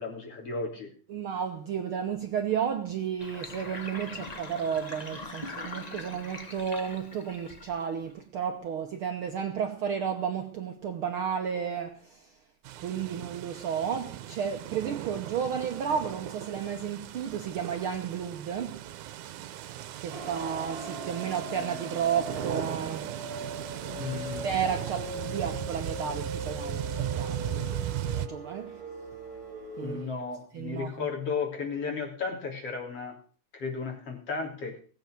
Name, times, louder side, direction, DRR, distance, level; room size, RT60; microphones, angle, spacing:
voice 1, 0.0-0.9 24.0-24.5 29.8-33.2 33.5-34.8, left 5 dB, 50° left, 4.4 m, -34 dB
voice 2, 1.1-12.3 12.8-18.8 20.0-23.1 24.4-27.8 28.2-28.9 29.8-30.1 30.5-31.1, right 7 dB, 60° right, 1.5 m, -32 dB
Sink (filling or washing), 3.2-8.1, left 2 dB, 70° left, 0.4 m, -42 dB
sound 1, 12.6-28.3, right 13 dB, 80° right, 2.3 m, -37 dB
sound 2, 20.1-30.1, right 1 dB, 30° right, 2.9 m, -40 dB
18.5 x 8.0 x 6.5 m
omnidirectional pair, 3.4 m